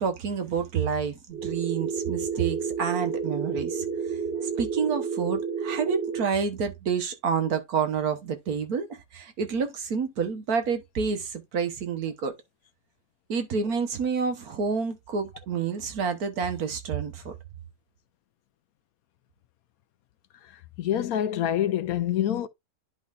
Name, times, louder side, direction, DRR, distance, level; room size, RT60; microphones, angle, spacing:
voice 1, 0.0-3.9 4.6-12.3 13.3-17.3, right 6 dB, 70° right, 1.6 m, -28 dB
sound 1, 1.3-6.3, right 6 dB, 40° right, 2.0 m, -30 dB
voice 2, 20.4-22.5, left 10 dB, 70° left, 1.0 m, -27 dB
10.5 x 4.0 x 2.5 m
omnidirectional pair, 1.7 m